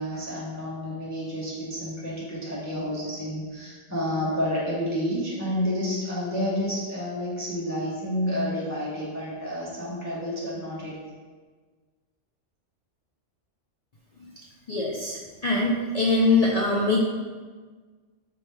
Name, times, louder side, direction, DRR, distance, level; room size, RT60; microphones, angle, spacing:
voice 1, 0.0-11.0, equal, 20° left, -7 dB, 0.6 m, -30 dB
voice 2, 14.7-15.2 15.4-17.0, left 3 dB, 70° left, -4 dB, 0.3 m, -22 dB
4.2 x 3.2 x 3.4 m, 1.4 s
omnidirectional pair, 1.2 m